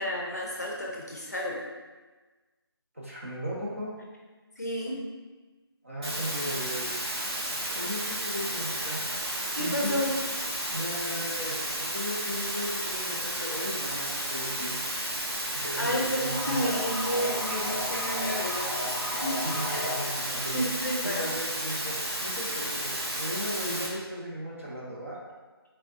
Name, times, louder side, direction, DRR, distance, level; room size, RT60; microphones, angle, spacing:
voice 1, 0.0-1.6 4.6-5.0 9.5-10.2 15.5-19.9 20.5-21.3, equal, 40° left, -2 dB, 0.5 m, -31 dB
voice 2, 2.9-3.9 5.8-7.1 7.7-9.0 9.6-10.0 10.7-14.7 15.5-16.7 19.3-20.6 21.0-25.2, equal, 30° right, -5 dB, 0.6 m, -36 dB
sound 1, 6.0-23.9, right 1 dB, 90° right, 1.4 m, -32 dB
sound 2, 16.2-20.9, left 1 dB, 5° left, 0.7 m, -36 dB
3.5 x 3.3 x 2.5 m, 1.3 s
figure-of-eight pair, 180°, 13 cm